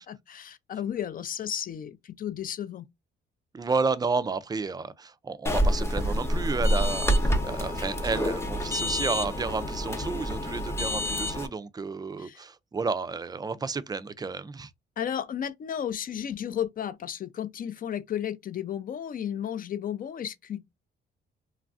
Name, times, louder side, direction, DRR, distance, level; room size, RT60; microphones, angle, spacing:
voice 1, 0.0-2.9 12.2-12.4 15.0-20.7, left 9 dB, 45° left, 0.4 m, -33 dB
voice 2, 3.5-14.7, right 4 dB, 20° right, 0.3 m, -31 dB
sound 1, 5.5-11.5, equal, 15° left, 0.7 m, -27 dB
3.1 x 2.4 x 2.4 m
cardioid pair, 90°, 20 cm